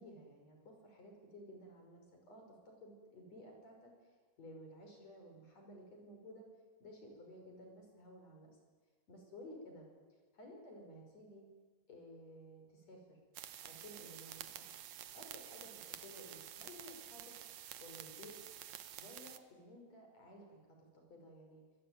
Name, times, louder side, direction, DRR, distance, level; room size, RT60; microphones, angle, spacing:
voice 1, 0.0-2.0 2.3-6.5 6.8-8.5 9.1-9.9 10.3-11.5 11.9-13.2 13.6-14.7 15.1-17.4 17.8-18.4 19.0-21.6, equal, 35° left, 2 dB, 6.4 m, -55 dB
sound 1, 13.3-19.4, right 11 dB, 80° right, 1.6 m, -50 dB
26.0 x 21.0 x 9.6 m, 1.4 s
omnidirectional pair, 5.0 m